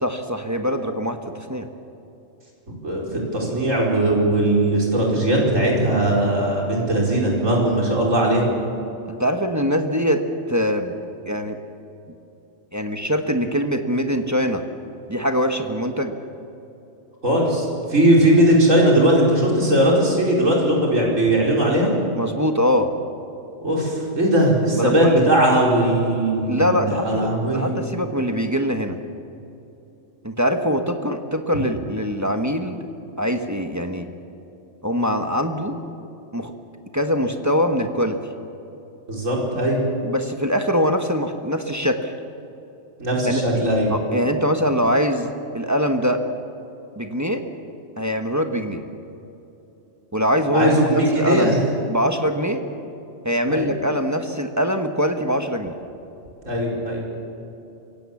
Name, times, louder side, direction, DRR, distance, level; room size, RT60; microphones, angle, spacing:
voice 1, 0.0-1.7 9.1-10.9 11.3-11.6 12.7-14.6 15.1-16.1 22.2-22.9 24.7-25.2 26.5-29.0 30.2-32.8 33.2-34.1 34.8-35.8 36.3-36.5 36.9-38.2 40.0-42.1 43.2-43.4 43.9-45.3 45.5-46.2 47.0-47.4 48.0-48.8 50.1-51.6 51.9-52.6 53.2-55.8, equal, 15° right, 5 dB, 1.2 m, -23 dB
voice 2, 2.8-8.4 17.2-21.9 23.6-26.8 27.0-27.7 39.1-39.8 43.0-43.9 50.5-51.6 53.5-53.7 56.5-57.0, right 1 dB, 90° right, -2 dB, 5.3 m, -19 dB
25.5 x 17.0 x 7.2 m, 2.9 s
omnidirectional pair, 1.3 m